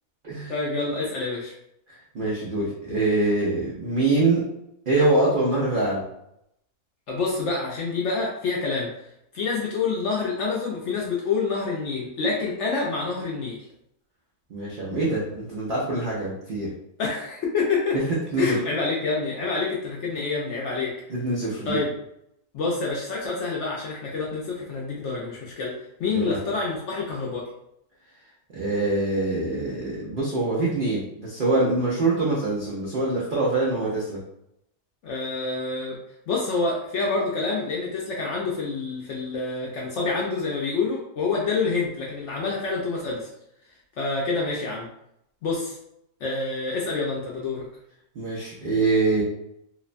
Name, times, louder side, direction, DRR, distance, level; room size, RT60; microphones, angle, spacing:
voice 1, 0.5-1.5 7.1-8.9 9.3-13.6 17.0-18.0 18.4-20.9 21.7-21.9 22.5-25.7 26.0-27.4 35.0-35.9 36.3-43.3 44.0-44.9 45.4-45.8 46.2-47.6, left 4 dB, 70° left, -3 dB, 0.7 m, -27 dB
voice 2, 1.9-4.4 4.9-6.1 14.5-16.7 18.3-18.6 21.1-21.8 26.1-26.4 28.5-34.2 48.1-49.2, right 2 dB, 90° right, -5 dB, 0.4 m, -24 dB
3.0 x 2.1 x 2.4 m, 0.79 s
omnidirectional pair, 1.7 m